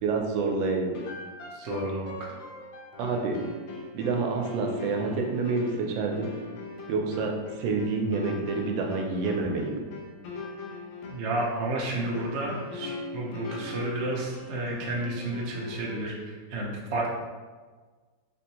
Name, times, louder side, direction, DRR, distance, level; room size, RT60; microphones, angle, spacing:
voice 1, 0.0-0.9 3.0-3.4 3.9-6.3 6.9-9.8, right 4 dB, 85° right, 2 dB, 1.3 m, -28 dB
sound 1, 0.9-16.3, left 4 dB, 85° left, 1.3 m, -41 dB
voice 2, 1.5-2.3 11.1-17.1, right 2 dB, 65° right, -3 dB, 0.7 m, -31 dB
3.7 x 2.6 x 2.8 m, 1.4 s
omnidirectional pair, 2.0 m